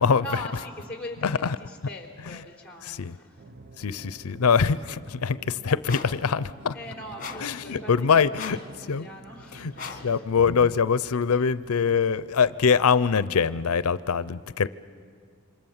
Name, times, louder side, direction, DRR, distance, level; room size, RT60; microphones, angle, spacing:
voice 1, 0.2-3.5 6.7-10.3, left 1 dB, 5° left, 3.7 m, -41 dB
voice 2, 2.8-3.1 3.8-6.7 7.4-8.6 8.9-9.1 9.5-14.7, left 6 dB, 90° left, 0.6 m, -23 dB
sound 1, 3.4-12.0, right 2 dB, 40° right, 0.8 m, -48 dB
sound 2, 5.9-6.2 7.2-7.6 8.3-8.7 9.8-10.1, left 5 dB, 40° left, 1.8 m, -38 dB
27.5 x 25.5 x 7.2 m
head